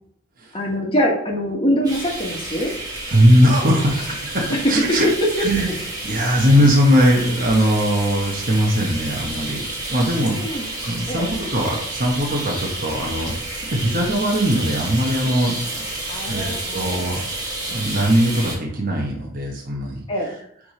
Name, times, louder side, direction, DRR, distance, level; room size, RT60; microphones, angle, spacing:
voice 1, 0.5-2.7 3.6-3.8 4.5-4.7 5.4-5.5 10.4-10.7 11.1-11.3 16.1-17.0 20.1-20.3, equal, 25° left, -1 dB, 1.5 m, -23 dB
sound 1, 1.8-18.5, right 2 dB, 20° right, 1.8 m, -30 dB
voice 2, 3.1-5.1 5.4-5.8 6.0-9.6 9.9-10.4 10.8-15.9 16.3-17.2 17.7-20.3, equal, 40° right, -2 dB, 1.2 m, -20 dB
6.9 x 3.5 x 4.9 m, 0.70 s
head